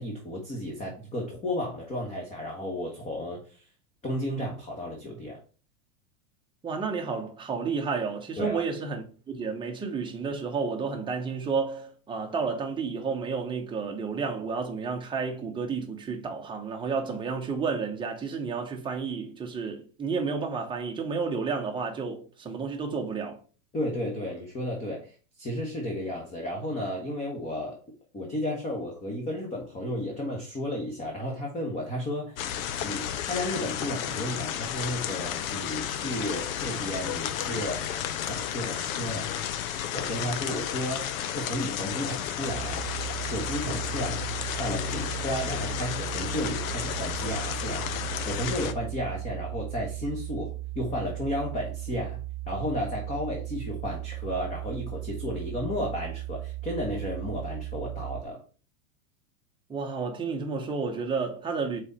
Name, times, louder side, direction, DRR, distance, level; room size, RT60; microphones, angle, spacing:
voice 1, 0.0-3.7 4.0-5.4 8.4-8.6 23.7-27.8 28.1-32.4 32.8-37.8 38.2-39.3 39.9-42.8 43.2-44.3 44.6-52.2 52.5-58.4, left 1 dB, 15° left, 1.3 m, -33 dB
voice 2, 6.6-23.4 59.7-61.8, right 5 dB, 10° right, 1.0 m, -31 dB
sound 1, 32.4-48.7, left 10 dB, 70° left, 0.8 m, -32 dB
sound 2, 42.5-58.2, right 17 dB, 70° right, 0.8 m, -37 dB
4.7 x 4.1 x 5.5 m
supercardioid pair, 145°, 42 cm